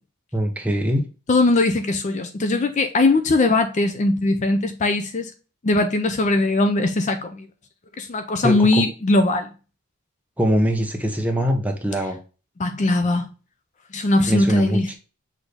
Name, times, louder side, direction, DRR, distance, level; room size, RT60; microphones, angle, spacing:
voice 1, 0.3-1.0 8.4-8.8 10.4-12.2 14.3-15.0, equal, 5° right, 0.8 m, -22 dB
voice 2, 1.3-5.3 5.6-7.5 8.0-9.5 12.6-13.3 13.9-15.0, left 2 dB, 35° left, 0.4 m, -20 dB
6.1 x 2.7 x 3.3 m
head